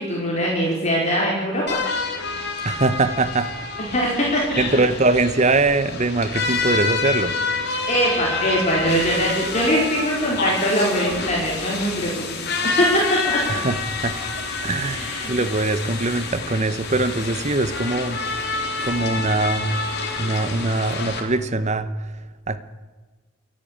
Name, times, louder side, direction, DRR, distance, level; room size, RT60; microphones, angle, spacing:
voice 1, 0.0-1.8 3.9-4.4 7.9-12.3 12.6-13.6 14.8-15.3, equal, 35° left, -3 dB, 4.5 m, -22 dB
sound 1, 1.7-21.2, left 4 dB, 50° left, 3.5 m, -28 dB
voice 2, 2.6-3.5 4.6-7.4 13.5-13.8 14.0-14.2 14.6-18.5 18.8-19.8 20.2-21.9 22.5-22.6, right 2 dB, 35° right, 13 dB, 0.9 m, -22 dB
28.5 x 10.5 x 8.8 m, 1.3 s
head